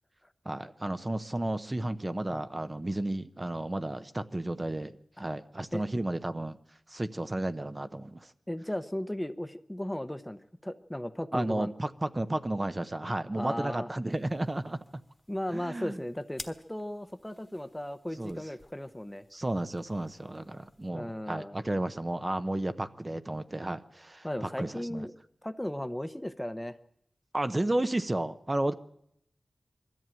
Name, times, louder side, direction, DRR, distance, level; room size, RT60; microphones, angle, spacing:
voice 1, 0.4-6.6 6.9-8.3 11.3-14.8 15.5-16.0 18.2-18.4 19.3-25.1 27.3-28.7, right 1 dB, 25° right, 10 dB, 0.8 m, -32 dB
voice 2, 8.5-11.7 13.3-13.9 15.3-19.2 20.9-21.5 24.2-25.2 25.4-26.8, left 1 dB, 10° left, 11 dB, 0.8 m, -36 dB
sound 1, 14.1-20.9, left 2 dB, 25° left, 1.4 m, -53 dB
22.0 x 14.0 x 9.0 m, 0.74 s
wide cardioid pair, 90°, 0 cm